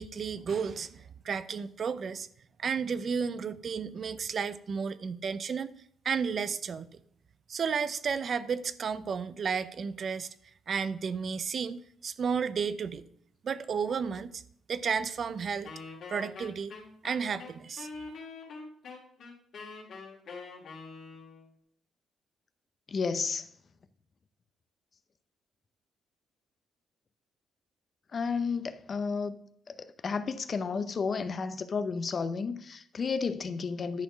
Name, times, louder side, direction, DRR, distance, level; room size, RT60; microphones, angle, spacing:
voice 1, 0.0-2.3 2.6-5.7 6.0-6.9 7.5-10.3 10.7-13.1 13.4-14.4 14.7-15.7 16.1-16.7 17.0-18.0, right 6 dB, 50° right, 0.5 m, -32 dB
Wind instrument woodwind instrument, 15.6-21.5, left 4 dB, 65° left, 2.4 m, -44 dB
voice 2, 22.9-23.5 28.1-29.4 29.7-34.0, left 5 dB, 45° left, 0.6 m, -32 dB
10.5 x 4.5 x 6.0 m
cardioid pair, 90°, 0 cm